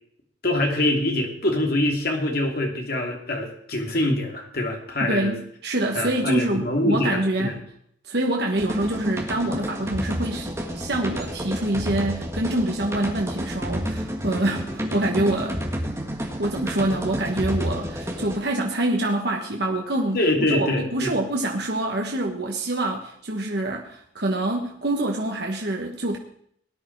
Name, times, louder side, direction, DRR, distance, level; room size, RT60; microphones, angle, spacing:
voice 1, 0.4-5.3 5.9-7.5 20.1-21.1, left 1 dB, 55° left, 2 dB, 2.8 m, -24 dB
voice 2, 5.0-7.6 8.0-15.6 16.4-20.2 20.5-26.2, right 1 dB, 60° right, 1 dB, 1.5 m, -26 dB
sound 1, 8.5-18.4, equal, 15° right, 1.8 m, -30 dB
18.5 x 10.5 x 4.7 m, 0.67 s
head